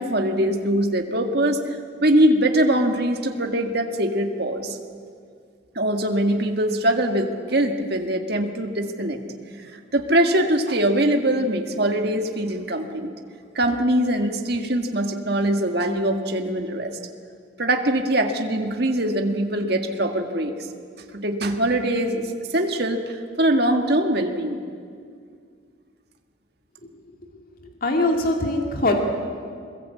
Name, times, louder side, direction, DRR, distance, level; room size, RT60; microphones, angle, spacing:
voice 1, 0.0-4.8 5.8-9.2 9.6-13.1 13.6-16.9 17.6-20.6 21.1-24.6, right 1 dB, 55° right, 4 dB, 1.9 m, -22 dB
voice 2, 27.8-28.9, left 2 dB, 45° left, 2 dB, 2.4 m, -21 dB
22.5 x 21.0 x 8.5 m, 2.2 s
head